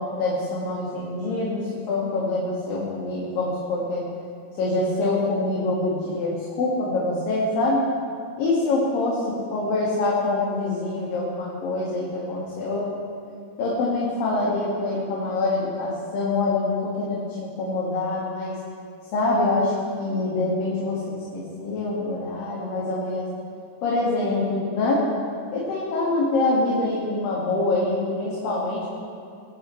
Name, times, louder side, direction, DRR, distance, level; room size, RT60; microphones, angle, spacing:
voice 1, 0.0-4.1 4.6-7.9 8.4-12.9 13.6-18.6 19.1-23.3 23.8-25.1 25.5-29.0, left 2 dB, 60° left, -5 dB, 3.5 m, -25 dB
22.0 x 16.5 x 3.3 m, 2.3 s
omnidirectional pair, 4.8 m